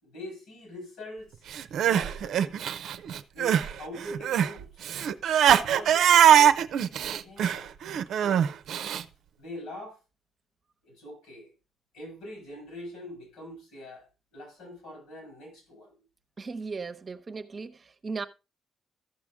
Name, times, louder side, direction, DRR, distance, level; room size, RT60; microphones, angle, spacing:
voice 1, 0.0-1.4 1.8-2.8 3.3-4.9 5.6-6.6 7.0-7.7 8.1-9.0 9.4-10.0 10.8-11.5 11.9-16.0, left 1 dB, 85° left, 6.1 m, -43 dB
Crying sobbing, 1.5-3.7 4.0-9.0, right 9 dB, 75° right, 0.6 m, -22 dB
voice 2, 16.4-18.3, right 4 dB, 35° right, 0.9 m, -37 dB
14.0 x 6.1 x 3.5 m
cardioid pair, 90°, 0 cm